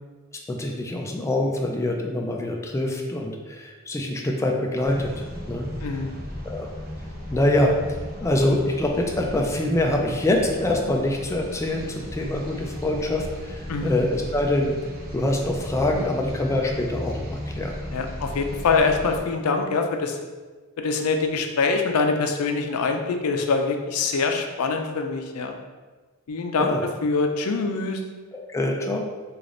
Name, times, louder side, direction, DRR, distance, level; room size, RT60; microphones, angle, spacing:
voice 1, 0.5-5.7 6.4-6.7 7.3-7.7 8.2-14.7 15.1-17.8 26.6-26.8 28.3-29.0, left 1 dB, 15° left, 1 dB, 0.3 m, -25 dB
sound 1, 4.8-19.2, equal, 45° right, 0.8 m, -35 dB
voice 2, 5.8-6.1 13.7-13.9 17.9-20.2 20.8-25.5 26.3-26.7 27.0-28.0, left 4 dB, 85° left, 4 dB, 0.4 m, -24 dB
3.3 x 2.4 x 3.7 m, 1.3 s
head